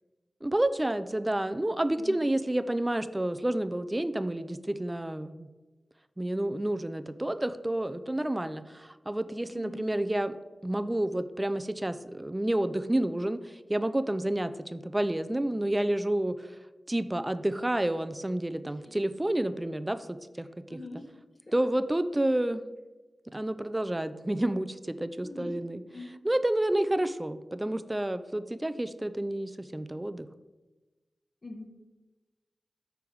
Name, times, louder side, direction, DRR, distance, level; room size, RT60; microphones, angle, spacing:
voice 1, 0.4-5.5 6.2-10.3 10.6-16.5 16.9-20.8 21.5-22.6 23.3-25.8 26.2-30.3, right 1 dB, 20° right, 12 dB, 0.5 m, -30 dB
voice 2, 9.5-9.8 18.8-18.9 20.7-21.1 21.4-21.5 25.2-25.5 25.9-26.2 31.4-31.7, left 2 dB, 50° left, 0 dB, 1.9 m, -43 dB
8.4 x 3.4 x 6.3 m, 1.2 s
cardioid pair, 40°, 0 cm